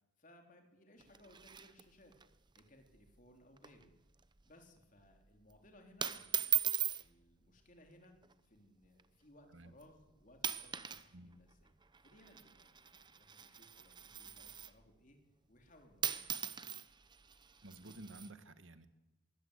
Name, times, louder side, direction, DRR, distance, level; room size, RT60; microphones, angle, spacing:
voice 1, 0.2-2.2 2.5-3.9 4.5-6.5 7.0-8.1 8.4-11.7 12.0-15.2 15.5-16.5, left 1 dB, 40° left, 4 dB, 3.6 m, -63 dB
sound 1, 1.0-2.3 2.5-2.6 2.9-3.2 3.6-3.9 4.2-4.5 5.3-5.5 6.0-7.0 8.0-8.3 9.0-9.1 9.8-10.0 10.3-11.1 11.3-14.8 15.7-15.8 16.0-18.3, right 10 dB, 20° right, 0.8 m, -39 dB
voice 2, 17.6-18.9, right 2 dB, 70° right, 11 dB, 1.6 m, -52 dB
22.5 x 17.0 x 8.2 m, 0.98 s
head